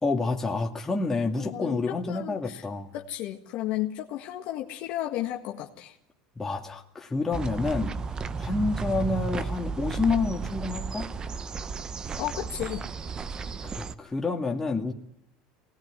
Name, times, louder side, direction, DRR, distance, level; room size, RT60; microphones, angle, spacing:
voice 1, 0.0-2.9 6.4-7.9 8.4-11.1 13.6-14.9, left 3 dB, 15° left, 1 dB, 2.3 m, -28 dB
voice 2, 1.4-2.7 2.9-6.0 12.2-12.8, left 14 dB, 65° left, 2 dB, 1.7 m, -33 dB
sound 1, 7.3-13.9, right 4 dB, 30° right, 1.0 m, -33 dB
23.5 x 19.0 x 9.9 m, 0.76 s
supercardioid pair, 105°, 3 cm